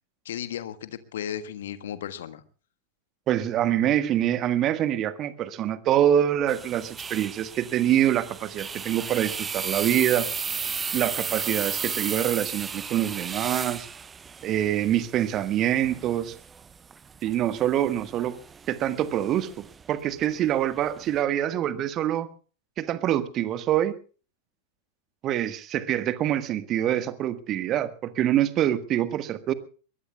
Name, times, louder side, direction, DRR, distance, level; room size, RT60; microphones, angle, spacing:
voice 1, 0.2-2.4, left 10 dB, 60° left, 11 dB, 1.5 m, -35 dB
voice 2, 3.3-10.3 10.9-13.9 14.4-16.3 17.2-18.4 18.7-22.3 22.8-23.9 25.2-29.5, right 11 dB, 35° right, 13 dB, 1.5 m, -25 dB
sound 1, 6.5-21.2, right 6 dB, 20° right, 0.7 m, -35 dB
23.5 x 21.5 x 2.3 m, 0.38 s
figure-of-eight pair, 90°, 0 cm